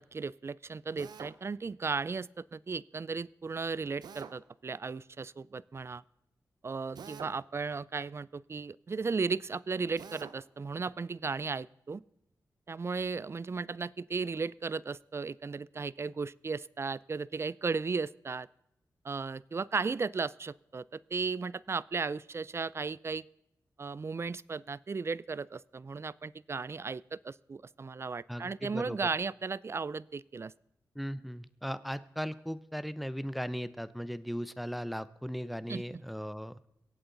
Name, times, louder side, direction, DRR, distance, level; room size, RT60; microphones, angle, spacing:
voice 1, 0.0-6.0 6.6-12.0 12.7-18.5 19.0-23.2 23.8-30.5 35.7-36.0, right 4 dB, 40° right, 22 dB, 0.4 m, -35 dB
Drill, 1.0-1.4 4.0-4.4 7.0-7.4 10.0-10.4, right 6 dB, 90° right, 0.8 m, -45 dB
voice 2, 28.3-29.0 30.9-36.6, equal, ahead, 15 dB, 0.6 m, -37 dB
22.5 x 8.6 x 3.9 m, 0.84 s
cardioid pair, 75°, 7 cm